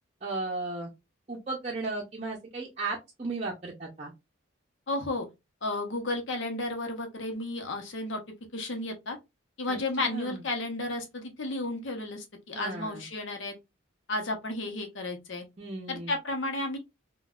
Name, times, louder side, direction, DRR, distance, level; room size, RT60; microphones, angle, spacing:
voice 1, 0.2-0.9 1.3-4.1 9.7-10.4 12.5-13.0 15.6-16.1, right 3 dB, 35° right, 0.6 m, -35 dB
voice 2, 4.9-5.3 5.6-8.2 8.5-9.2 9.6-13.5 14.1-15.4 15.9-16.8, left 2 dB, 70° left, 0.8 m, -33 dB
3.8 x 2.2 x 2.3 m
head